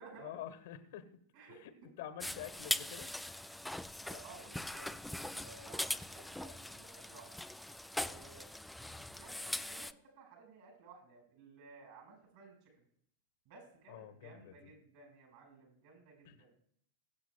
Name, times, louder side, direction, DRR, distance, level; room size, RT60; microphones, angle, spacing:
voice 1, 0.2-1.2 1.5-3.1 13.9-14.7 16.2-16.4, left 11 dB, 55° left, 10 dB, 1.2 m, -48 dB
sound 1, 2.2-9.9, left 1 dB, 5° left, 0.3 m, -41 dB
voice 2, 4.0-7.4 7.9-8.5 8.8-12.7 13.4-16.5, right 4 dB, 50° right, 0 dB, 5.1 m, -57 dB
22.5 x 7.9 x 2.3 m, 0.66 s
figure-of-eight pair, 90°, 0 cm